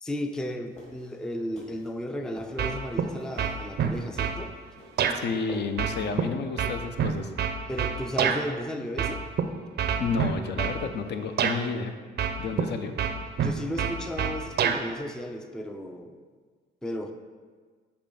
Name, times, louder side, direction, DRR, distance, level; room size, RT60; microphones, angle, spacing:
voice 1, 0.0-4.5 7.7-9.2 13.4-16.2 16.8-17.1, equal, 5° left, 6 dB, 0.3 m, -34 dB
sound 1, 0.7-6.1, left 1 dB, 35° left, 1.7 m, -48 dB
sound 2, 2.6-3.1 3.4-4.4 5.0-5.2 5.8-8.4 9.0-9.4 9.8-10.8 11.4-11.6 12.2-12.7 13.0-14.8, right 7 dB, 55° right, 0.5 m, -26 dB
voice 2, 5.1-7.3 10.0-11.9 12.4-12.9, left 5 dB, 60° left, 7 dB, 0.5 m, -31 dB
6.7 x 2.9 x 5.3 m, 1.5 s
cardioid pair, 90°, 20 cm